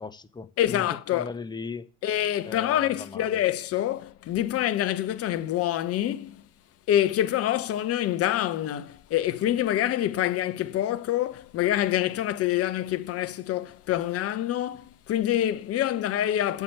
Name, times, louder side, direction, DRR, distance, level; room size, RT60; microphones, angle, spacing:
voice 1, 0.0-1.9 2.4-3.4, left 4 dB, 10° left, 0.7 m, -38 dB
voice 2, 0.6-1.3 2.0-6.4 6.9-16.6, left 12 dB, 35° left, 1.0 m, -26 dB
8.2 x 7.1 x 6.9 m
figure-of-eight pair, 70°, 41 cm